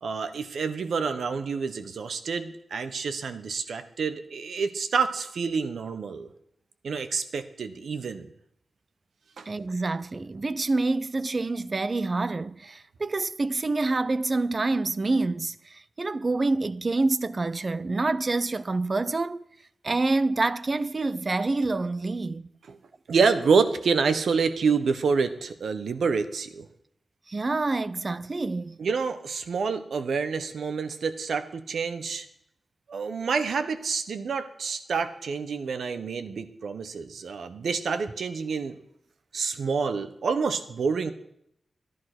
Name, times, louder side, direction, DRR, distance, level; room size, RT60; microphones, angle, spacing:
voice 1, 0.0-6.3 6.8-8.3 9.4-9.5 22.7-22.8 23.1-26.7 28.8-32.3 32.9-38.8 39.3-41.1, right 5 dB, 80° right, 1.2 m, -27 dB
voice 2, 9.5-19.4 19.8-22.5 27.3-28.8, right 3 dB, 35° right, 0.5 m, -27 dB
14.5 x 11.0 x 6.2 m
wide cardioid pair, 125°, 0 cm